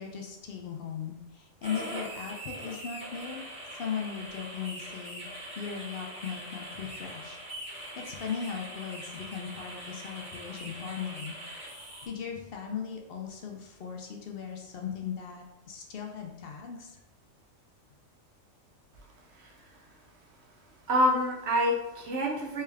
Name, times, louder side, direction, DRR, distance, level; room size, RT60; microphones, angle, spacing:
voice 1, 0.0-3.4 3.8-5.3 5.6-7.4 7.7-11.4 11.6-17.0, left 7 dB, 60° left, 1 dB, 0.7 m, -38 dB
sound 1, 1.6-12.1, right 1 dB, 5° right, 0.9 m, -42 dB
voice 2, 19.3-19.7 20.9-22.6, equal, 60° right, 0 dB, 1.0 m, -27 dB
3.3 x 3.3 x 3.4 m, 0.96 s
omnidirectional pair, 1.4 m